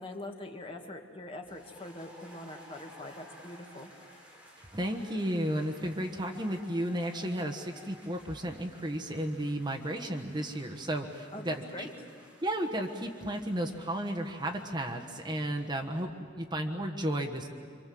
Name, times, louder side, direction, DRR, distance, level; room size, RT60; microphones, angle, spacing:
voice 1, 0.0-3.9 11.3-11.9, left 1 dB, 30° left, 3 dB, 2.0 m, -43 dB
sound 1, 1.4-16.0, equal, 5° right, 4.3 m, -56 dB
voice 2, 4.6-11.9 12.4-16.1 16.4-17.5, right 1 dB, 25° right, 3 dB, 1.3 m, -33 dB
26.5 x 25.5 x 7.8 m, 2.1 s
head